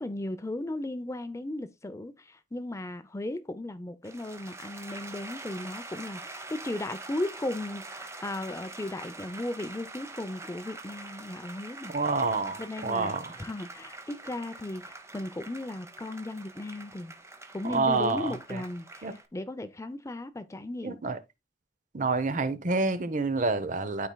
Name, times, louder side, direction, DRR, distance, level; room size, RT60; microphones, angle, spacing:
voice 1, 0.0-11.9 12.6-17.1 17.5-21.0, left 1 dB, 15° left, 0.5 m, -36 dB
sound 1, 4.0-19.3, right 2 dB, 15° right, 0.7 m, -45 dB
voice 2, 11.9-13.3 17.6-18.6 19.0-19.1 20.8-21.2 21.9-24.1, right 3 dB, 45° right, 0.7 m, -28 dB
12.0 x 4.3 x 2.2 m
head